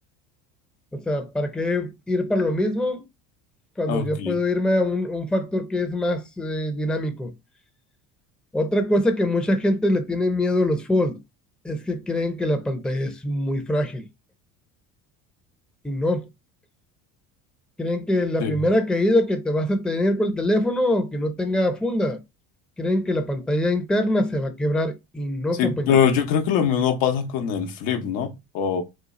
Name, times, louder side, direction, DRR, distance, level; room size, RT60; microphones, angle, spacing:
voice 1, 0.9-3.0 3.8-7.3 8.5-11.2 11.6-14.1 15.8-16.3 17.8-22.2 22.8-26.0, left 1 dB, ahead, 0.6 m, -23 dB
voice 2, 3.9-4.4 18.4-18.5 25.6-28.8, left 8 dB, 70° left, 0.9 m, -23 dB
4.1 x 2.3 x 4.0 m
supercardioid pair, 90°, 40 cm